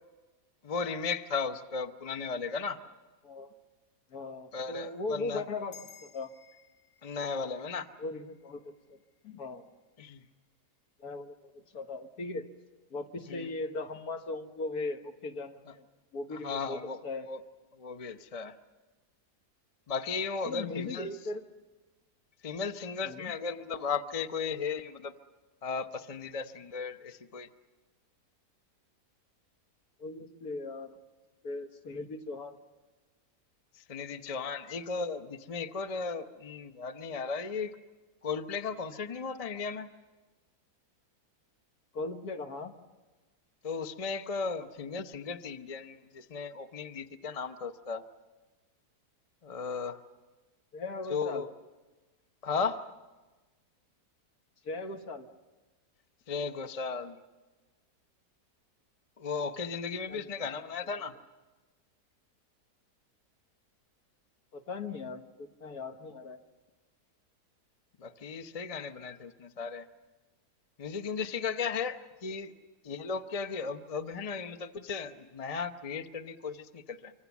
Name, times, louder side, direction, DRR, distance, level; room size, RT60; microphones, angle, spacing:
voice 1, 0.6-2.8 4.5-5.4 7.0-7.9 10.0-10.2 13.3-13.5 16.3-17.0 17.3-17.4 17.7-18.6 19.9-21.1 22.4-25.1 25.6-27.5 33.7-37.8 38.2-39.9 43.6-48.0 49.4-50.0 51.1-51.5 52.4-52.9 56.3-57.2 59.2-61.1 68.0-69.9 70.8-72.5 72.8-77.1, left 5 dB, 30° left, 9 dB, 0.7 m, -36 dB
voice 2, 3.2-3.5 4.1-6.3 8.0-8.7 9.2-9.7 11.0-12.5 12.9-15.9 16.1-17.3 20.4-21.4 23.0-23.3 30.0-31.0 31.4-32.6 41.9-42.7 50.7-51.5 54.6-55.3 60.1-60.3 64.5-66.4, left 3 dB, 70° left, 5 dB, 2.0 m, -38 dB
sound 1, 5.7-10.4, left 8 dB, 50° left, 1.9 m, -58 dB
25.5 x 25.5 x 7.2 m, 1.2 s
omnidirectional pair, 1.7 m